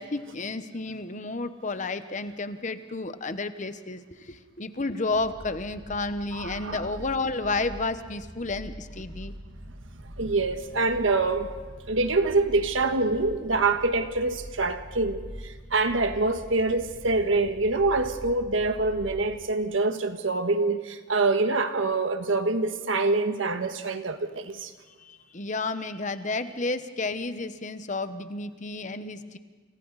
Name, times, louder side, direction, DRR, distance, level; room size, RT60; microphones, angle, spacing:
voice 1, 0.0-9.3 25.0-29.4, left 3 dB, 40° left, 1.0 m, -31 dB
sound 1, 5.1-19.4, equal, 60° right, 6.5 m, -44 dB
voice 2, 6.3-6.8 10.2-11.6 11.9-24.7, right 3 dB, 85° right, 1.5 m, -25 dB
29.5 x 27.5 x 4.1 m
head